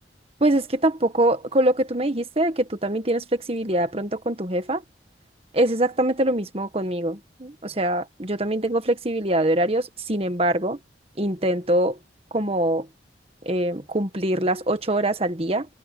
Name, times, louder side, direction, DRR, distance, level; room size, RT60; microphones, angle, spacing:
voice 1, 0.4-4.8 5.5-10.8 11.2-12.0 12.3-12.9 13.4-15.7, right 1 dB, 30° right, 1.7 m, -23 dB
head